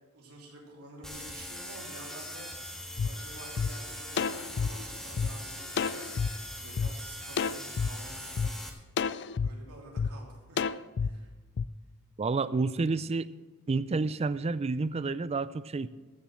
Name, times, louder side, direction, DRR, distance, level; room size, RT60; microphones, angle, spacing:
voice 1, 0.0-2.5 3.0-6.1 6.3-8.5 9.4-10.6 11.0-11.3, right 2 dB, 90° right, -1 dB, 3.3 m, -50 dB
sound 1, 1.0-8.7, equal, 5° left, 1.5 m, -41 dB
sound 2, 3.0-3.1 3.6-3.7 4.2-5.3 5.8-6.3 6.8-6.9 7.4-7.9 8.4-8.5 9.0-9.5 10.0-10.1 10.6-11.1 11.6-11.7, left 6 dB, 50° left, 0.4 m, -29 dB
voice 2, 12.2-13.3 13.7-15.9, right 3 dB, 30° right, 16 dB, 0.4 m, -29 dB
14.0 x 7.5 x 6.2 m, 1.3 s
head